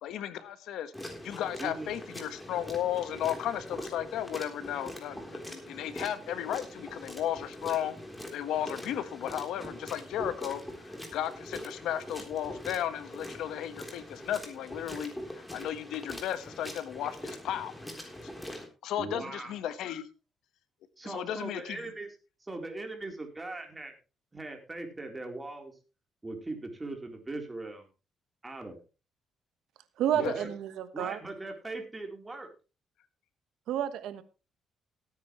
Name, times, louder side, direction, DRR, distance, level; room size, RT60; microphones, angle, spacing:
voice 1, 0.0-0.9 1.2-7.9 8.3-18.1 18.8-20.1 21.0-21.9 30.2-30.3, left 11 dB, 85° left, 12 dB, 1.3 m, -35 dB
sound 1, 0.9-18.7, left 1 dB, 10° left, 3.7 m, -43 dB
voice 2, 1.6-1.9 19.0-19.5 21.0-22.1 22.4-23.9 24.3-25.7 26.2-27.8 28.4-28.8 30.1-30.5 30.9-32.5, right 2 dB, 20° right, 4 dB, 3.8 m, -39 dB
voice 3, 30.0-31.2 33.7-34.2, right 10 dB, 85° right, 12 dB, 1.3 m, -30 dB
17.5 x 9.4 x 3.2 m, 0.32 s
cardioid pair, 90°, 0 cm